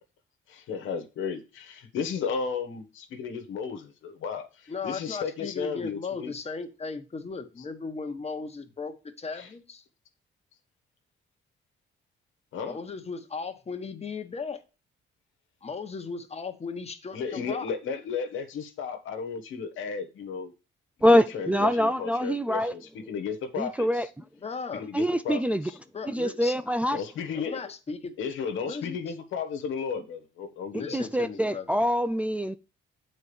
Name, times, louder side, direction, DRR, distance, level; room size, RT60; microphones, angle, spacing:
voice 1, 0.5-6.3 9.4-9.5 12.5-12.8 17.1-20.5 21.0-24.0 24.7-25.8 26.9-27.6 28.2-31.0, left 6 dB, 80° left, 1.4 m, -34 dB
voice 2, 4.7-9.8 12.6-14.6 15.6-17.7 24.4-24.8 25.9-26.5 27.3-28.1 28.6-29.0 30.7-31.7, left 4 dB, 30° left, 1.4 m, -36 dB
voice 3, 21.0-22.7 23.6-24.1 24.9-25.7 26.1-27.0 30.9-32.6, equal, 5° right, 0.4 m, -24 dB
8.1 x 4.4 x 7.0 m
cardioid pair, 90°, 20 cm